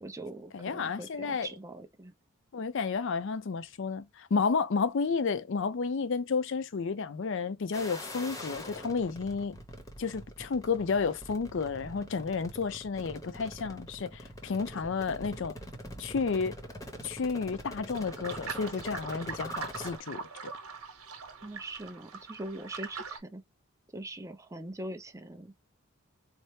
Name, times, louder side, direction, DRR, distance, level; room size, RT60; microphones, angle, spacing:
voice 1, 0.0-2.1 21.4-23.4 23.9-25.5, right 1 dB, 15° right, 0.5 m, -42 dB
voice 2, 0.5-1.5 2.5-9.6 10.0-15.5 16.0-16.6 17.0-20.2, left 5 dB, 55° left, 0.4 m, -31 dB
sound 1, 7.7-20.0, equal, 15° left, 0.8 m, -44 dB
Pollos acuáticos, 17.9-23.2, right 5 dB, 75° right, 1.1 m, -42 dB
4.2 x 2.0 x 3.1 m
head